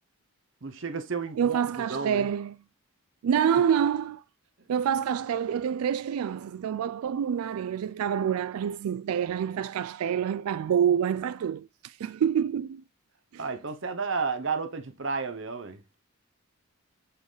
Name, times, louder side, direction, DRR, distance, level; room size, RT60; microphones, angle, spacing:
voice 1, 0.6-1.6 1.9-2.3 13.4-15.8, right 4 dB, 60° right, 0.8 m, -32 dB
voice 2, 1.4-2.6 3.2-4.2 4.7-12.8 13.3-13.4, right 8 dB, 90° right, 0.3 m, -27 dB
7.6 x 3.9 x 4.0 m
head